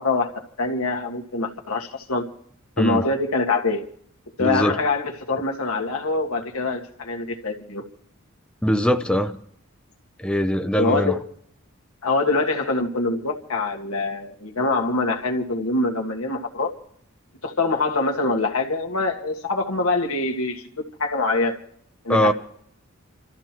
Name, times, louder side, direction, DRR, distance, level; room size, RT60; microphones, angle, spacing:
voice 1, 0.0-2.2 2.8-3.8 4.4-7.8 10.8-11.2 12.0-16.7 17.4-20.7 21.0-21.6 22.0-22.3, left 3 dB, 85° left, 1.7 m, -24 dB
voice 2, 2.8-3.1 4.4-4.8 8.6-9.4 10.2-11.2 22.1-22.3, equal, 5° left, 0.5 m, -22 dB
29.0 x 13.5 x 3.0 m
head